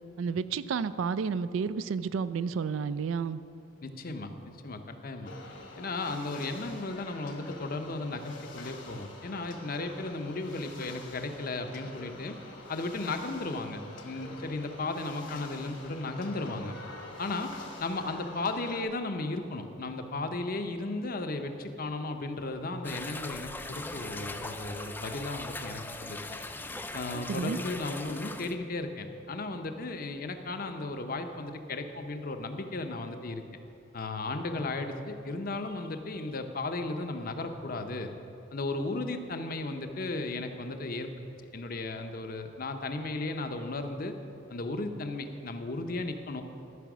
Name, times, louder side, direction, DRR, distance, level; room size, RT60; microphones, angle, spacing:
voice 1, 0.2-3.4 27.3-27.6, right 5 dB, 80° right, 15 dB, 0.3 m, -31 dB
voice 2, 3.8-5.3 5.8-12.4 12.7-16.8 17.2-17.5 17.8-26.4 26.9-33.4 33.9-38.1 38.5-41.1 41.5-44.1 44.5-46.4, left 2 dB, 45° left, 7 dB, 0.7 m, -35 dB
sound 1, 5.3-18.8, left 2 dB, 65° left, 1.3 m, -47 dB
sound 2, 22.8-28.6, left 2 dB, 10° left, 0.4 m, -40 dB
13.0 x 5.7 x 6.1 m, 2.7 s
head